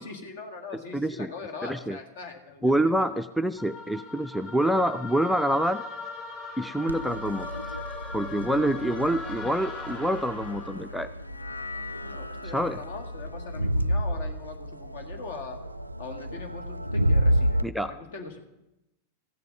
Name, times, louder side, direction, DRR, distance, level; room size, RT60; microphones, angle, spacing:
voice 1, 0.0-3.2 12.0-15.6 16.0-18.4, left 4 dB, 55° left, 5 dB, 1.7 m, -41 dB
voice 2, 0.9-1.3 1.6-2.0 2.6-5.8 6.6-7.8 8.1-11.1 12.5-12.8 17.6-17.9, right 1 dB, ahead, 7 dB, 0.4 m, -26 dB
sound 1, 3.6-10.8, left 3 dB, 35° left, 3.2 m, -39 dB
Crowd, 6.9-17.6, equal, 85° right, 0.3 m, -30 dB
sound 2, 9.6-16.0, left 3 dB, 85° left, 0.6 m, -44 dB
14.0 x 6.8 x 7.3 m, 0.92 s
figure-of-eight pair, 90°, 0 cm